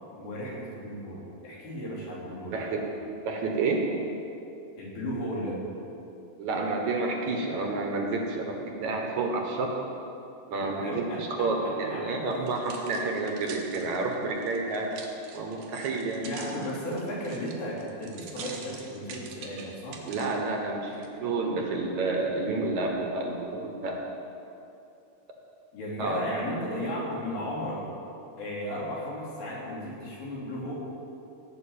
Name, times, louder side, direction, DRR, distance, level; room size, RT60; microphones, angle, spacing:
voice 1, 0.1-2.7 4.8-5.6 10.8-12.4 16.2-20.0 25.7-27.8 28.4-30.7, equal, 85° left, -6 dB, 5.3 m, -35 dB
voice 2, 2.5-2.9 3.2-3.9 6.4-9.7 10.5-15.0 15.3-16.2 20.1-24.0 26.0-26.2, right 3 dB, 60° right, 1 dB, 2.5 m, -29 dB
sound 1, 12.3-20.4 20.9-21.1, right 5 dB, 85° right, 3.1 m, -45 dB
18.0 x 6.4 x 8.9 m, 2.7 s
omnidirectional pair, 4.0 m